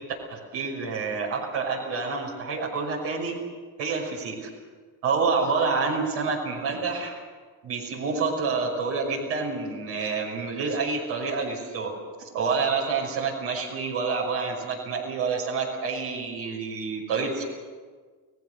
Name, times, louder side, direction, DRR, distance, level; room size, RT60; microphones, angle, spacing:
voice 1, 0.3-3.3 3.8-4.5 5.0-7.1 7.6-11.9 12.3-17.4, right 4 dB, 80° right, -2 dB, 6.0 m, -28 dB
30.0 x 18.0 x 6.5 m, 1.5 s
supercardioid pair, 75°, 44 cm